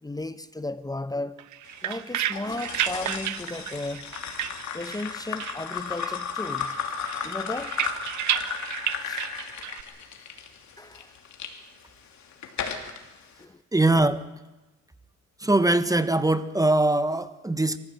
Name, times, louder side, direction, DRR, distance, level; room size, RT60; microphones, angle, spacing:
voice 1, 0.0-1.4 1.8-4.1 4.7-6.8 7.2-8.0 9.0-9.3 10.8-11.1 13.4-13.6, left 2 dB, 10° left, 0.8 m, -35 dB
sound 1, 1.4-5.1 5.4-6.3 6.6-9.8, right 12 dB, 75° right, 1.0 m, -32 dB
sound 2, 2.3-11.5 12.1-13.0, left 7 dB, 70° left, 3.0 m, -34 dB
voice 2, 13.7-14.2 15.4-17.8, right 2 dB, 10° right, 1.1 m, -22 dB
23.5 x 14.5 x 8.1 m
cardioid pair, 90°, 30 cm